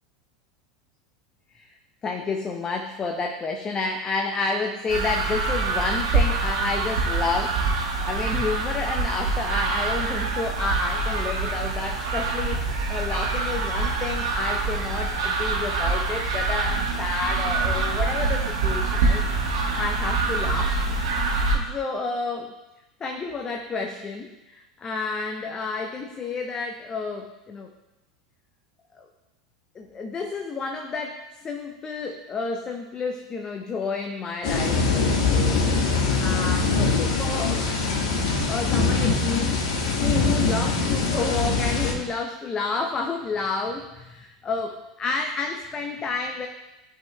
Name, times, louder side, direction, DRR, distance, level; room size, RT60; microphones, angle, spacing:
voice 1, 2.0-7.6 8.0-19.3 19.8-20.8 21.2-22.5 23.0-27.7 28.9-29.1 29.7-35.9 36.2-37.6 38.5-39.6 40.0-46.5, left 4 dB, 25° left, 4 dB, 0.6 m, -30 dB
sound 1, 4.9-21.6, right 3 dB, 60° right, 1.6 m, -25 dB
sound 2, 34.4-41.9, left 4 dB, 50° left, 1.4 m, -23 dB
13.5 x 5.5 x 2.3 m, 1.0 s
figure-of-eight pair, 80°, 3 cm